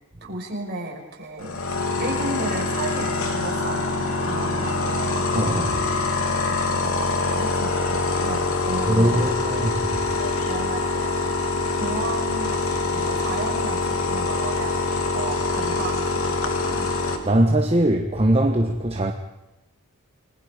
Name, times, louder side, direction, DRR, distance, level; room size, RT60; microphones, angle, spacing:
voice 1, 0.2-1.6 2.0-5.2 6.5-9.7 10.5-11.3 11.7-16.9, right 2 dB, 45° right, 5.7 m, -34 dB
sound 1, 1.4-17.2, left 3 dB, 65° left, 2.9 m, -25 dB
voice 2, 5.3-5.8 8.9-9.7 17.2-19.1, right 1 dB, 25° right, 1.3 m, -20 dB
29.5 x 21.0 x 5.2 m
head